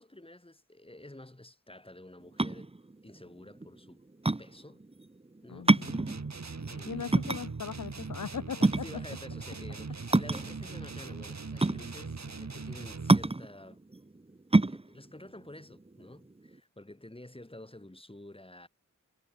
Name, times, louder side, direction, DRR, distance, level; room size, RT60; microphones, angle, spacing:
voice 1, 0.0-2.7 3.0-4.0 4.4-4.8 5.4-5.7 6.7-7.2 8.7-13.8 14.7-18.7, left 1 dB, 15° left, 3.4 m, -50 dB
sound 1, 2.2-16.6, right 2 dB, 20° right, 0.9 m, -28 dB
voice 2, 5.5-6.0 6.9-8.9, left 7 dB, 70° left, 0.9 m, -39 dB
sound 2, 5.8-13.3, right 4 dB, 55° right, 2.9 m, -41 dB
wide cardioid pair, 60°, 32 cm